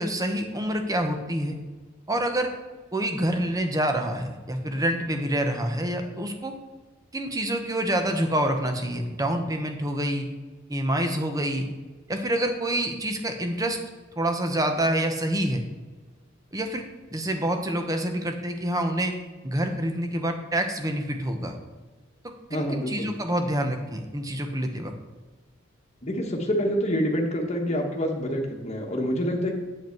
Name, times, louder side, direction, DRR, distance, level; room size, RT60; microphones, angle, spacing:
voice 1, 0.0-1.5 2.1-2.5 2.9-6.5 7.1-10.3 10.7-11.7 12.1-13.8 14.2-15.6 16.5-16.8 17.1-19.1 19.4-21.5 22.5-24.9, right 1 dB, 20° right, 5 dB, 1.0 m, -27 dB
voice 2, 22.5-23.1 26.0-29.5, equal, 35° left, 1 dB, 1.3 m, -27 dB
8.2 x 7.9 x 4.6 m, 1.3 s
head